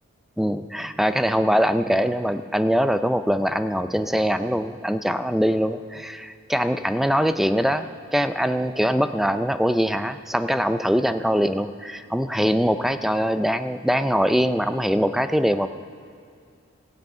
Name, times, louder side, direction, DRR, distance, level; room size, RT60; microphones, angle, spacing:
voice 1, 0.4-15.7, equal, ahead, 10 dB, 0.4 m, -22 dB
15.5 x 8.0 x 8.8 m, 2.3 s
head